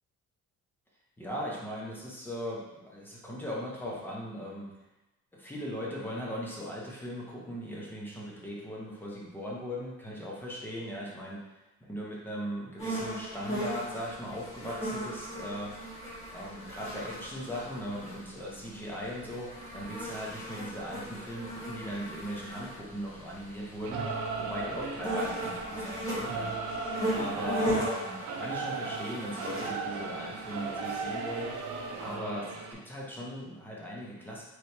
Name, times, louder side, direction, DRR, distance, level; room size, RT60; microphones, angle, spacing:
voice 1, 1.2-4.7 5.3-11.5 11.9-15.7 16.3-31.5 32.0-34.4, equal, 5° left, -5 dB, 0.8 m, -39 dB
sound 1, 12.8-32.2, equal, 25° left, 1.4 m, -38 dB
Singing / Musical instrument, 23.8-32.7, right 4 dB, 70° right, 0.6 m, -36 dB
3.3 x 3.0 x 4.3 m, 0.99 s
cardioid pair, 160°, 30 cm